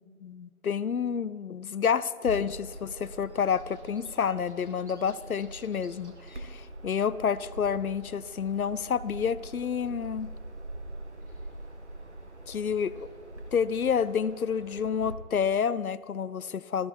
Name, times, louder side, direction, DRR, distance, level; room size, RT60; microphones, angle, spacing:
voice 1, 0.0-10.3 12.5-13.1 13.5-16.9, left 7 dB, 80° left, 18 dB, 0.6 m, -29 dB
Bird vocalization bird call bird song, 2.2-15.1, right 1 dB, 55° right, 1.5 m, -44 dB
14.0 x 10.5 x 4.6 m, 2.1 s
figure-of-eight pair, 170°, 43 cm